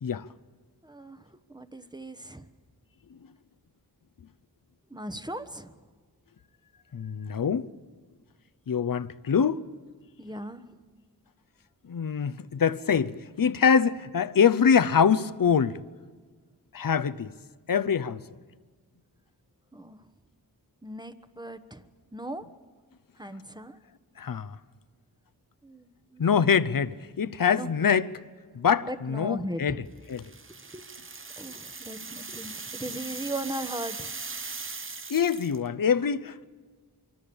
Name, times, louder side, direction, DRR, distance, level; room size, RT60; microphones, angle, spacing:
voice 1, 0.8-2.5 4.9-5.8 10.2-10.6 19.7-20.0 20.8-21.8 22.1-22.5 23.2-23.8 25.6-26.6 27.5-27.7 28.8-29.8 30.7-30.9 31.4-34.1, right 1 dB, 10° right, 1.1 m, -38 dB
voice 2, 6.9-7.7 8.7-9.6 11.8-15.8 16.7-17.3 17.7-18.2 24.2-24.6 26.2-28.1 28.5-29.8 30.1-30.2 35.1-36.4, left 7 dB, 55° left, 0.8 m, -24 dB
sound 1, 30.1-35.7, right 4 dB, 30° right, 0.9 m, -39 dB
25.0 x 23.5 x 7.1 m
wide cardioid pair, 70°, 39 cm